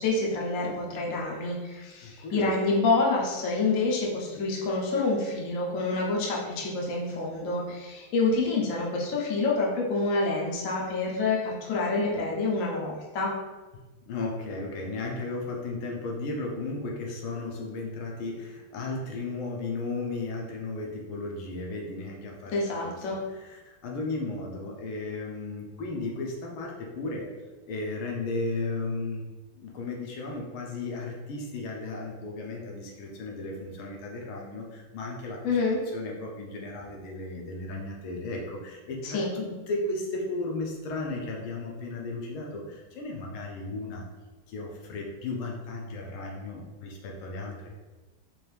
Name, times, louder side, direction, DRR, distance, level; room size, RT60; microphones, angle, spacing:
voice 1, 0.0-13.3 22.5-23.2 35.4-35.8 39.0-39.3, left 3 dB, 60° left, -3 dB, 0.8 m, -27 dB
voice 2, 2.0-2.5 14.0-22.5 22.8-27.3 27.7-29.2 29.5-35.4 35.9-44.0 44.5-47.7, left 2 dB, 75° left, -1 dB, 1.5 m, -35 dB
4.5 x 2.6 x 3.3 m, 1.2 s
omnidirectional pair, 2.4 m